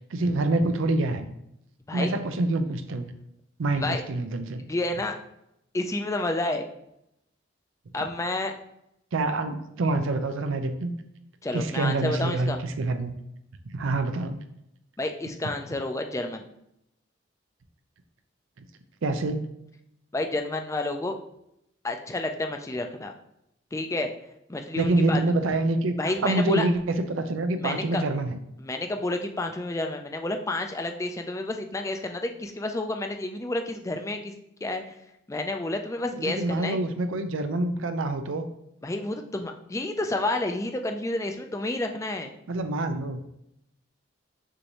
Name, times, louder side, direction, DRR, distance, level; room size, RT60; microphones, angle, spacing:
voice 1, 0.1-1.3 1.9-3.1 3.6-4.6 9.1-10.9 11.5-13.1 13.7-14.4 19.0-19.4 24.7-28.4 36.2-38.5 42.5-43.2, right 2 dB, 80° right, 8 dB, 0.5 m, -26 dB
voice 2, 4.7-5.1 5.7-6.6 7.9-8.5 11.4-12.6 15.0-16.4 20.1-21.1 21.8-23.1 23.7-24.1 24.5-25.2 26.0-26.6 27.6-28.0 28.6-34.3 34.6-35.0 35.3-36.8 38.8-42.3, left 2 dB, 15° left, 5 dB, 0.4 m, -30 dB
6.3 x 2.6 x 3.0 m, 0.80 s
head